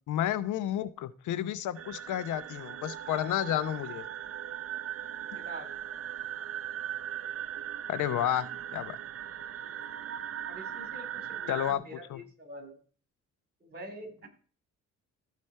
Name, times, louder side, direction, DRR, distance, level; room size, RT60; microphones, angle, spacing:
voice 1, 0.1-4.1 7.9-9.0 11.5-11.8 12.1-12.2, left 12 dB, 80° left, 16 dB, 0.8 m, -31 dB
sound 1, 1.7-11.7, right 10 dB, 50° right, 0.7 m, -39 dB
voice 2, 5.3-5.8 10.5-12.8 13.6-14.3, right 1 dB, 35° right, 6 dB, 3.8 m, -45 dB
15.0 x 5.1 x 4.4 m, 0.41 s
cardioid pair, 90°, 30 cm